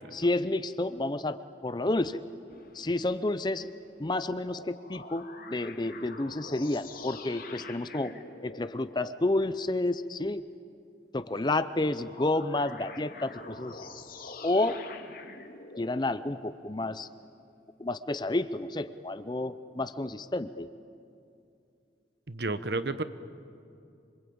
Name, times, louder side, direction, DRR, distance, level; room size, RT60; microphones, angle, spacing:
voice 1, 0.1-2.2 2.7-3.7 4.0-8.1 8.4-10.4 11.1-13.8 14.4-14.8 15.8-17.1 17.8-20.7, left 2 dB, 25° left, 13 dB, 0.6 m, -30 dB
sound 1, 2.5-4.1 4.4-9.2 11.7-16.5, left 3 dB, 50° left, 2.0 m, -46 dB
voice 2, 22.3-23.0, right 3 dB, 60° right, 12 dB, 1.1 m, -32 dB
26.5 x 24.5 x 8.7 m, 2.6 s
head